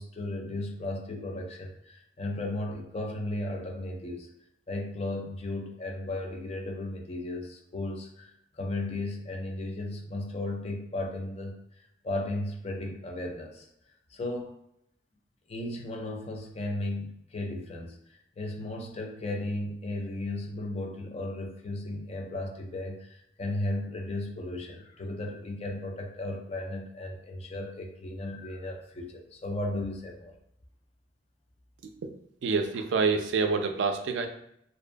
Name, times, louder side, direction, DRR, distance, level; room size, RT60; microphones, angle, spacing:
voice 1, 0.0-4.3 4.7-13.7 14.1-14.5 15.5-30.3, left 1 dB, 35° left, 2 dB, 0.4 m, -35 dB
voice 2, 32.4-34.3, right 4 dB, 75° right, 6 dB, 0.3 m, -27 dB
2.6 x 2.2 x 2.5 m, 0.75 s
head